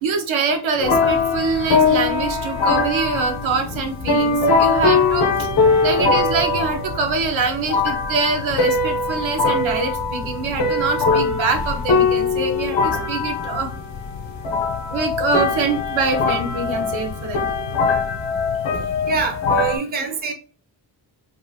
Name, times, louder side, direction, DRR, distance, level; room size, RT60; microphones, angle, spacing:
voice 1, 0.0-13.7 14.9-17.4, right 4 dB, 90° right, 4 dB, 0.7 m, -24 dB
sound 1, 0.8-19.8, left 4 dB, 65° left, 0.7 m, -21 dB
voice 2, 19.1-20.3, right 4 dB, 25° right, 4 dB, 0.4 m, -24 dB
2.6 x 2.4 x 2.6 m, 0.37 s
wide cardioid pair, 165°, 45 cm